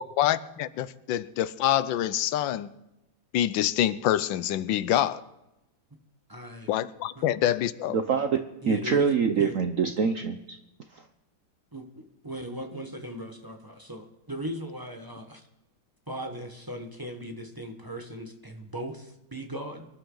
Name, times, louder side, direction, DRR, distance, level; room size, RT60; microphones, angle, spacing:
voice 1, 0.0-2.7 3.3-5.2 6.7-8.0, left 12 dB, 85° left, 16 dB, 1.4 m, -26 dB
voice 2, 6.3-6.8 7.1-7.2 8.6-9.5 11.7-15.4 16.1-19.9, equal, 15° right, 3 dB, 1.0 m, -38 dB
voice 3, 7.9-8.4 8.7-10.6, right 6 dB, 60° right, 7 dB, 0.9 m, -25 dB
24.5 x 11.5 x 3.9 m, 0.92 s
omnidirectional pair, 2.0 m